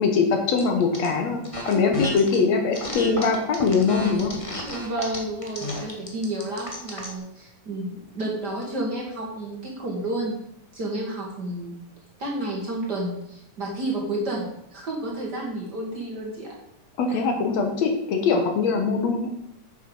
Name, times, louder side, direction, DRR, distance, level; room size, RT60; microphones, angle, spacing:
voice 1, 0.0-1.4 1.7-4.3 17.0-19.3, left 4 dB, 65° left, 4 dB, 2.3 m, -22 dB
sound 1, 0.6-1.1 1.4-2.4 2.7-7.1, left 1 dB, 20° left, 0.9 m, -32 dB
voice 2, 4.6-10.4 10.7-11.8 12.2-16.5 17.1-17.2, right 1 dB, 40° right, -2 dB, 2.0 m, -31 dB
9.3 x 6.9 x 5.4 m, 0.78 s
omnidirectional pair, 3.4 m